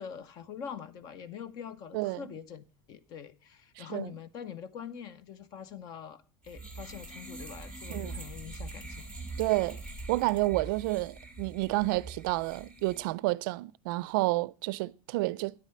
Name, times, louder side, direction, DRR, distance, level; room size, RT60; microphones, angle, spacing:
voice 1, 0.0-9.1, left 8 dB, 35° left, 0.6 m, -44 dB
voice 2, 3.8-4.1 7.9-8.2 9.4-9.8 10.1-15.5, right 20 dB, 65° right, 0.4 m, -30 dB
sound 1, 6.4-13.1, right 2 dB, 10° left, 1.9 m, -43 dB
9.7 x 8.3 x 4.3 m
cardioid pair, 180°, 12 cm